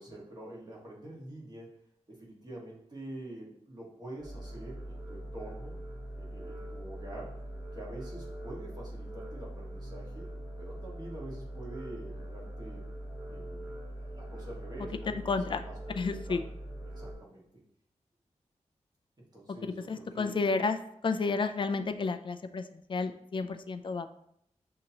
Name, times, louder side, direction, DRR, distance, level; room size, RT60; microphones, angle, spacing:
voice 1, 0.0-1.7 2.1-5.7 6.2-7.3 7.7-10.3 10.6-12.8 13.3-16.4 16.8-17.4 19.2-20.4, right 1 dB, 35° right, -4 dB, 1.6 m, -46 dB
sound 1, 4.2-17.1, right 1 dB, 15° right, 0.8 m, -42 dB
voice 2, 15.3-15.6 16.0-16.4 19.9-20.8 21.0-24.1, left 4 dB, 45° left, 9 dB, 0.4 m, -31 dB
6.3 x 2.8 x 2.8 m, 0.72 s
wide cardioid pair, 100°, 12 cm